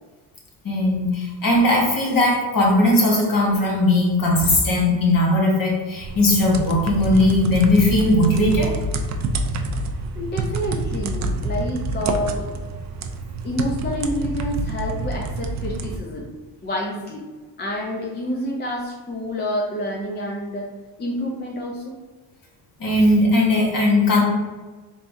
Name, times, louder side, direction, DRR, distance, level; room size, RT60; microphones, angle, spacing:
voice 1, 0.6-8.7 22.8-24.2, left 1 dB, 45° left, -1 dB, 1.2 m, -18 dB
sound 1, 6.0-16.0, right 2 dB, 40° right, 0.4 m, -27 dB
voice 2, 9.9-12.5 13.4-16.3 16.6-17.3 17.6-20.7 21.0-22.0, equal, 20° left, -2 dB, 0.6 m, -28 dB
3.4 x 3.3 x 2.6 m, 1.3 s
cardioid pair, 95°, 48 cm